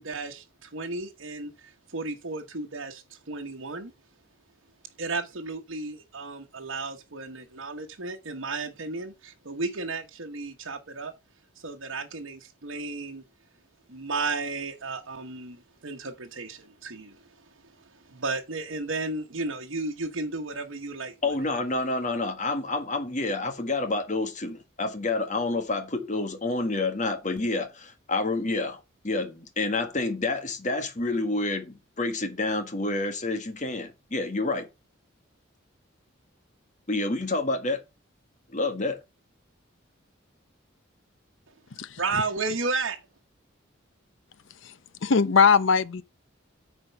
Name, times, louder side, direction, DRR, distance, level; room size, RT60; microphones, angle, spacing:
voice 1, 0.0-3.9 5.0-11.1 11.6-13.2 13.9-17.2 17.8-21.1 42.0-43.0, right 3 dB, 80° right, 1.1 m, -33 dB
voice 2, 21.2-34.7 36.9-37.8 38.5-39.0, left 2 dB, 40° left, 1.5 m, -28 dB
voice 3, 45.0-46.0, left 5 dB, 70° left, 0.6 m, -20 dB
8.7 x 4.5 x 5.6 m
head